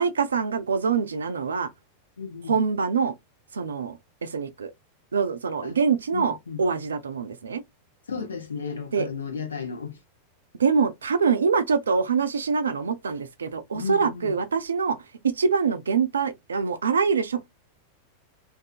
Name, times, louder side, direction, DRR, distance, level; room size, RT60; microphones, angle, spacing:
voice 1, 0.0-1.7 2.5-3.1 3.5-4.7 5.1-7.6 8.9-9.1 10.6-17.5, right 5 dB, 70° right, 0.4 m, -25 dB
voice 2, 2.2-2.5 5.6-5.8 6.1-6.7 8.1-10.0 13.7-14.4, left 5 dB, 70° left, 0.7 m, -34 dB
2.6 x 2.4 x 2.3 m
figure-of-eight pair, 90°, 0 cm